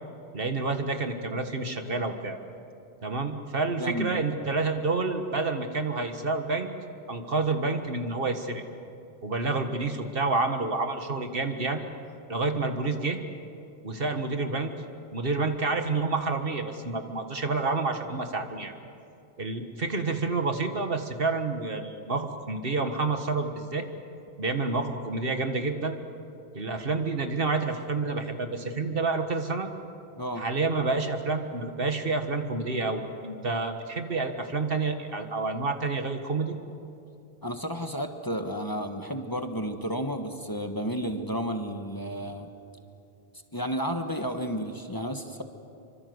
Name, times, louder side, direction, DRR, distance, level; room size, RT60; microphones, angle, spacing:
voice 1, 0.3-2.4 3.0-6.7 7.1-8.6 9.2-11.8 12.3-13.2 13.8-14.7 15.1-18.7 19.4-23.8 24.4-26.0 26.5-29.7 30.4-36.6, right 3 dB, 60° right, 6 dB, 1.8 m, -29 dB
voice 2, 3.8-4.2 30.2-30.4 37.4-42.5 43.5-45.4, equal, 20° left, 5 dB, 1.4 m, -32 dB
26.5 x 25.0 x 8.0 m, 2.8 s
omnidirectional pair, 1.1 m